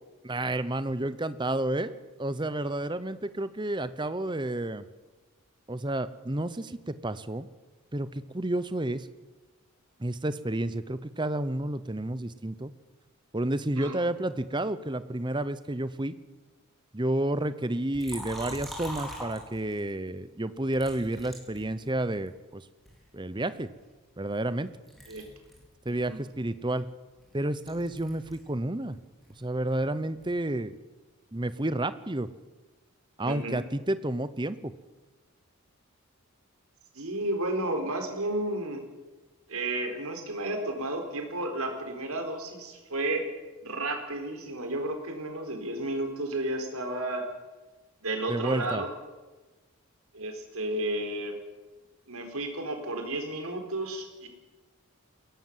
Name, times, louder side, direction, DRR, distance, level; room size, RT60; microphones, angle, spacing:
voice 1, 0.2-4.8 5.7-7.5 7.9-9.1 10.0-12.7 13.3-16.1 16.9-22.7 23.1-23.7 24.2-24.7 25.8-26.9 27.3-29.0 29.4-30.7 31.3-32.3 33.2-34.7 48.3-48.8, right 1 dB, 20° right, 14 dB, 0.8 m, -30 dB
Liquid, 17.9-19.9 20.7-22.3 22.9-24.6 24.9-28.5 28.8-30.5, equal, ahead, 4.8 m, -44 dB
voice 2, 33.2-33.6 36.9-38.8 39.5-43.3 43.6-47.2 48.0-48.9 50.1-51.4 52.1-54.3, right 1 dB, 75° right, 5 dB, 4.0 m, -32 dB
21.5 x 17.5 x 7.5 m, 1.2 s
head